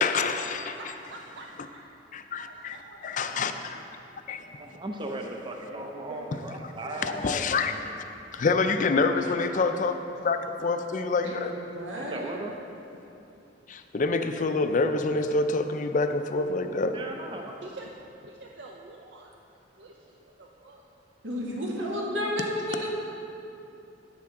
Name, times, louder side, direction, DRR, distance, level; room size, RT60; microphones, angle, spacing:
voice 1, 0.0-0.8 2.1-2.8 3.0-3.8 4.3-4.5 6.3-6.4 7.0-8.0 8.3-10.0 10.2-11.5 13.7-17.0, left 3 dB, 40° left, 8 dB, 0.4 m, -27 dB
voice 2, 0.6-2.0 2.4-3.2 4.7-4.8 9.2-9.8 10.6-10.7 17.6-17.9 18.2-19.3 19.7-20.8, right 2 dB, 65° right, 0 dB, 0.6 m, -47 dB
voice 3, 4.6-7.5 12.0-12.5 16.9-17.5, right 2 dB, 25° right, 2 dB, 0.5 m, -37 dB
voice 4, 5.7-6.2 6.8-7.2 11.1-12.3 21.2-22.9, equal, 85° right, -3 dB, 1.8 m, -33 dB
10.0 x 8.4 x 3.7 m, 2.7 s
head